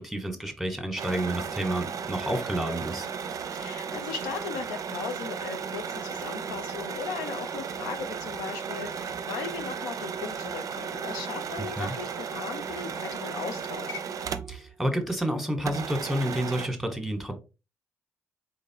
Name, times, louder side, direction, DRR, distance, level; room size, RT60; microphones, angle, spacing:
voice 1, 0.0-3.1 11.8-11.9 14.5-17.4, right 1 dB, ahead, 1.4 m, -30 dB
sound 1, 1.0-14.7 15.0-15.1 15.6-16.7, right 6 dB, 55° right, 0.4 m, -35 dB
voice 2, 3.5-14.0, left 6 dB, 85° left, 0.5 m, -37 dB
3.8 x 3.4 x 2.8 m
hypercardioid pair, 45°, 7 cm